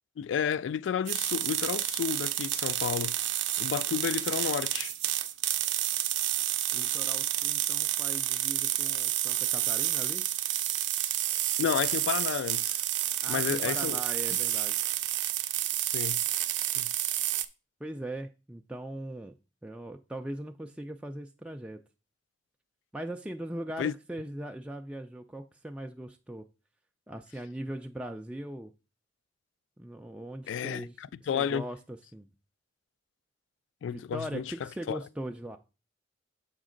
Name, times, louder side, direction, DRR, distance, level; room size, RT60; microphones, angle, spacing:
voice 1, 0.2-3.2 3.6-4.9 11.6-12.9 13.3-14.0 15.9-16.2 16.8-16.9 23.8-23.9 30.5-30.9 31.3-31.6 33.8-35.0, left 8 dB, 85° left, 0.3 m, -31 dB
sound 1, 1.1-17.5, right 13 dB, 70° right, 0.5 m, -30 dB
voice 2, 6.7-10.3 13.2-14.8 17.8-19.3 19.6-21.8 22.9-26.5 27.1-28.7 29.8-32.3 33.9-35.6, right 1 dB, 5° right, 0.3 m, -40 dB
7.2 x 5.0 x 3.8 m
head